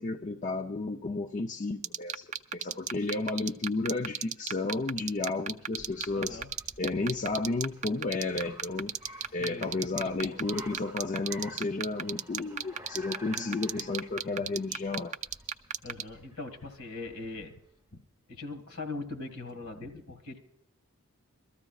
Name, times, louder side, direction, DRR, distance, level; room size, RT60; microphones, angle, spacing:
voice 1, 0.0-6.4 6.8-8.9 9.3-15.2, left 3 dB, 35° left, 0.4 m, -32 dB
sound 1, 1.8-16.0, right 8 dB, 30° right, 0.4 m, -32 dB
Car, 4.9-17.7, right 1 dB, 15° right, 1.1 m, -52 dB
voice 2, 6.1-6.5 9.4-9.7 10.0-10.4 13.3-13.9 15.8-17.6 18.3-20.4, left 3 dB, 70° left, 1.8 m, -41 dB
23.5 x 14.0 x 2.3 m
head